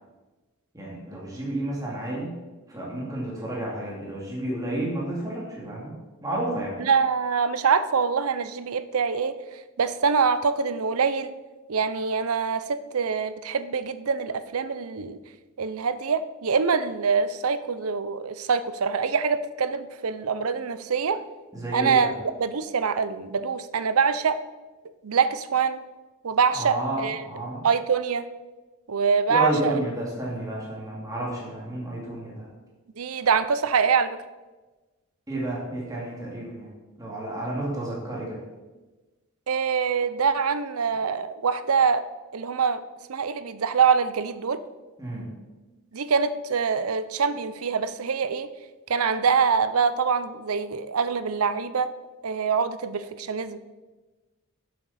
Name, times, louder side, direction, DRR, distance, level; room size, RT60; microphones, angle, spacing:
voice 1, 0.7-2.3 2.7-5.9 6.2-6.8 21.5-22.1 26.5-27.6 29.3-32.5 35.3-36.7 37.0-38.4 45.0-45.3, right 1 dB, 15° right, -4 dB, 2.4 m, -31 dB
voice 2, 6.8-9.4 9.8-11.3 11.7-15.2 15.6-21.2 21.7-22.1 22.4-24.4 25.0-25.8 26.2-27.2 27.6-28.2 28.9-29.8 33.0-34.2 39.5-42.1 42.3-42.8 43.1-44.6 45.9-48.5 48.9-51.9 52.2-53.6, right 5 dB, 80° right, 13 dB, 0.6 m, -24 dB
11.5 x 7.7 x 4.2 m, 1.2 s
head